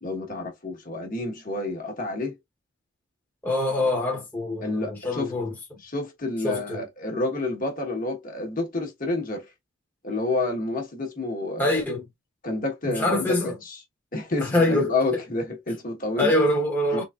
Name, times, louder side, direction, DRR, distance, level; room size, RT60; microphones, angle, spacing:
voice 1, 0.0-2.4 4.6-5.3 5.8-9.5 10.0-11.8 12.4-13.8 14.1-16.3 16.9-17.0, left 2 dB, 40° left, 1.3 m, -29 dB
voice 2, 3.4-5.5 6.4-6.8 11.6-12.0 12.8-13.5 14.4-14.9 16.2-17.0, left 1 dB, 10° left, 1.0 m, -24 dB
3.9 x 3.1 x 2.4 m
head